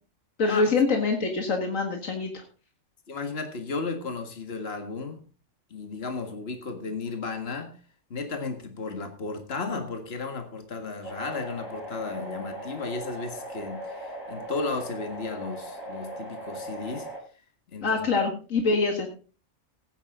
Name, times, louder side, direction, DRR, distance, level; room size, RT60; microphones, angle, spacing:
voice 1, 0.4-2.4 17.8-19.1, left 3 dB, 90° left, 3 dB, 2.2 m, -25 dB
voice 2, 3.1-5.2 5.7-7.8 8.1-17.1 17.7-18.0, left 4 dB, 50° left, 6 dB, 2.0 m, -34 dB
sound 1, 11.0-17.2, right 1 dB, 30° left, 8.3 m, -39 dB
16.0 x 9.8 x 3.8 m, 0.35 s
omnidirectional pair, 1.3 m